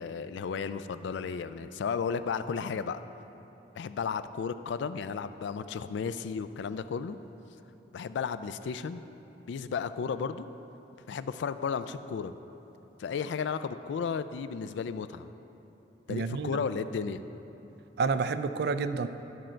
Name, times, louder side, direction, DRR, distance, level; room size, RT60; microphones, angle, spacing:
voice 1, 0.0-3.0 3.7-7.2 7.9-9.0 9.5-10.5 11.1-12.3 13.0-15.3 16.1-17.2, left 6 dB, 75° left, 12 dB, 0.3 m, -33 dB
voice 2, 16.1-16.5 18.0-19.1, right 4 dB, 60° right, 10 dB, 0.4 m, -29 dB
11.5 x 6.4 x 4.4 m, 3.0 s
head